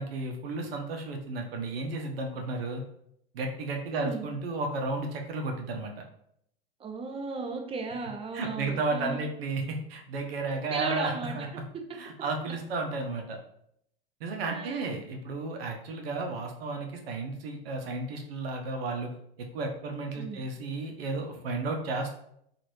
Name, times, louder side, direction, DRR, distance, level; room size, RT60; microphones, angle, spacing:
voice 1, 0.0-2.8 3.3-5.9 8.3-11.6 12.0-13.4 14.2-19.1 19.4-22.1, right 3 dB, 75° right, 3 dB, 0.7 m, -33 dB
voice 2, 3.9-4.3 6.8-9.2 10.7-11.5 14.5-14.9 20.2-20.4, right 4 dB, 20° right, 3 dB, 0.5 m, -35 dB
3.0 x 2.5 x 2.6 m, 0.72 s
hypercardioid pair, 95°, 29 cm